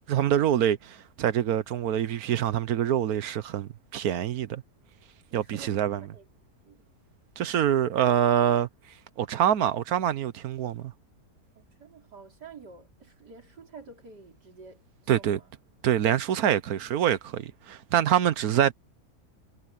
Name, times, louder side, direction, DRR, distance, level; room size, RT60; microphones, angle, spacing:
voice 1, 0.1-4.6 5.3-6.0 7.4-8.7 9.2-10.9 15.1-15.4 15.8-18.7, right 10 dB, 65° right, 1.3 m, -25 dB
voice 2, 5.3-6.3 6.6-6.9 11.5-15.5, right 4 dB, 90° right, 4.3 m, -49 dB
omnidirectional pair, 1.7 m